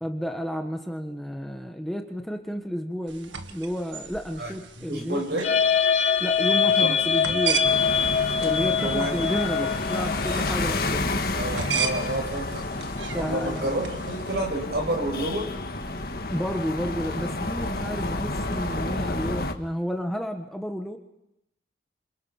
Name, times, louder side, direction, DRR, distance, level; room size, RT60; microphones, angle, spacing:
voice 1, 0.0-5.4 6.2-7.7 8.4-11.3 13.1-13.8 16.3-21.0, equal, ahead, 4 dB, 1.3 m, -31 dB
sound 1, 3.1-14.4, right 6 dB, 90° right, 1.7 m, -36 dB
voice 2, 4.4-5.5 6.8-6.9 7.3-7.4 8.8-9.1 9.6-9.7 11.3-12.6 13.1-15.5, right 1 dB, 60° right, 2 dB, 7.6 m, -30 dB
sound 2, 5.4-10.5, left 7 dB, 35° left, 1.7 m, -23 dB
sound 3, 7.6-19.5, left 2 dB, 55° left, 1.7 m, -30 dB
28.5 x 27.0 x 5.9 m, 0.82 s
head